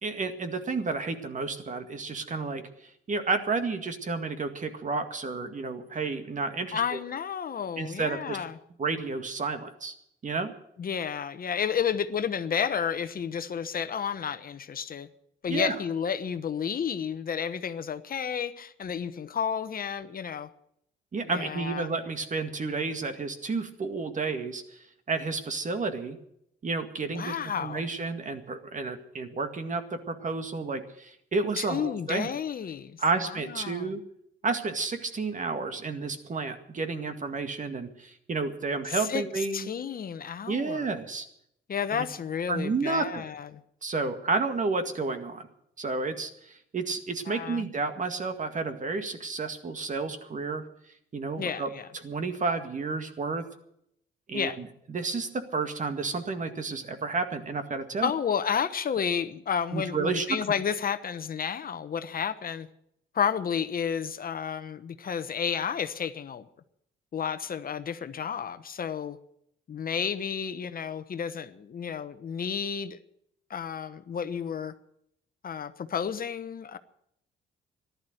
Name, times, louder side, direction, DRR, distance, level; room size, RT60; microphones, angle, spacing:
voice 1, 0.0-2.6 3.1-6.8 7.8-8.4 8.8-9.9 10.2-10.5 15.5-15.8 21.1-26.2 26.6-32.3 33.0-34.0 34.4-39.7 40.5-41.3 41.9-42.0 42.5-43.3 43.8-45.5 45.8-50.7 51.1-51.7 52.0-53.4 54.3-58.1 59.7-60.3, right 4 dB, 40° right, 8 dB, 2.0 m, -31 dB
voice 2, 6.7-8.6 10.8-15.1 15.4-20.5 21.2-21.9 27.1-27.9 31.6-34.0 38.9-40.9 41.7-43.6 47.3-47.7 51.4-51.9 54.3-54.6 58.0-62.7 63.1-66.5 67.1-69.2 69.7-73.0 73.5-74.7 75.4-76.8, left 7 dB, 45° left, 11 dB, 1.1 m, -31 dB
14.5 x 11.5 x 7.9 m, 0.74 s
cardioid pair, 90°, 20 cm